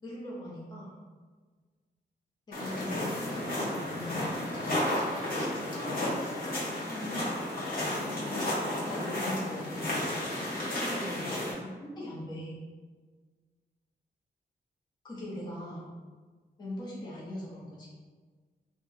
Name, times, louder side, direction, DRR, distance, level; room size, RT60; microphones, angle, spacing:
voice 1, 0.0-0.9 2.5-4.4 5.7-6.6 6.9-7.3 7.9-8.5 8.8-10.0 10.5-11.3 11.6-12.6 15.0-15.9 16.6-17.9, left 1 dB, 25° left, -5 dB, 0.6 m, -40 dB
sound 1, 2.5-11.5, left 1 dB, 55° left, 0.9 m, -32 dB
2.8 x 2.4 x 3.8 m, 1.5 s
wide cardioid pair, 175°, 18 cm